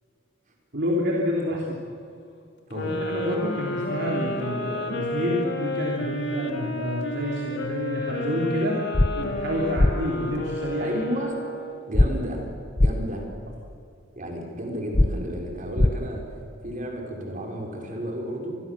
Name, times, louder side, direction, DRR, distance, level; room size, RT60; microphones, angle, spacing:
voice 1, 0.7-1.8 2.8-8.7 9.1-10.9, left 1 dB, 60° right, -2 dB, 3.2 m, -28 dB
sound 1, 2.7-11.9, left 1 dB, 60° left, 2.8 m, -31 dB
sound 2, 8.9-9.1 9.8-9.9 11.9-12.1 12.8-12.9 14.9-15.1 15.8-15.9, left 1 dB, 25° left, 0.6 m, -17 dB
voice 2, 10.8-11.3 11.9-12.4 12.8-13.3 14.1-18.6, equal, 40° right, 1 dB, 4.9 m, -32 dB
26.5 x 21.5 x 7.3 m, 2.4 s
head